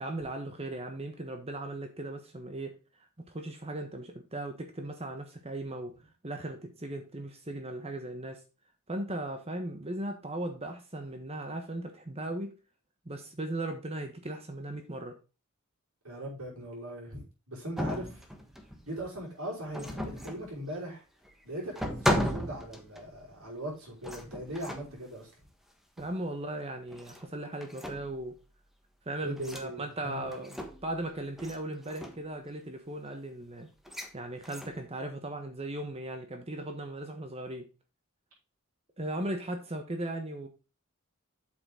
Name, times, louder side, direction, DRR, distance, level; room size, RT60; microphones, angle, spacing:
voice 1, 0.0-2.8 3.3-5.9 6.2-8.4 8.9-12.5 13.0-15.2 26.0-28.4 29.0-33.7 34.1-37.7 39.0-40.5, right 1 dB, 30° right, 1.2 m, -37 dB
voice 2, 16.0-18.3 18.8-21.0 21.4-25.3 29.2-30.2, right 1 dB, 85° right, 5.6 m, -39 dB
sound 1, 17.8-18.9 19.7-20.5 21.2-21.3 21.7-23.2 24.0-25.0 26.0-26.2 26.9-27.3 27.6-28.2 29.4-29.7 30.3-31.0 31.4-31.6 31.8-32.2 33.8-34.1 34.4-34.8, equal, ahead, 1.3 m, -35 dB
8.2 x 7.1 x 3.8 m
head